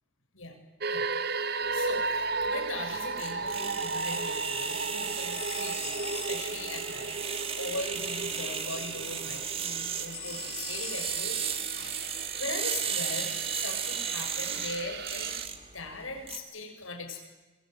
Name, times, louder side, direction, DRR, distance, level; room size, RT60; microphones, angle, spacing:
sound 1, 0.8-15.5, right 3 dB, 50° right, 1.2 m, -36 dB
voice 1, 0.9-7.3 7.6-15.4 15.7-17.3, left 2 dB, 75° left, 2 dB, 7.4 m, -40 dB
sound 2, 1.7-16.4, right 7 dB, 25° right, 2.1 m, -35 dB
sound 3, 5.3-6.8 10.1-11.6, left 8 dB, 30° left, 2.4 m, -42 dB
27.0 x 22.5 x 9.6 m, 1.2 s
head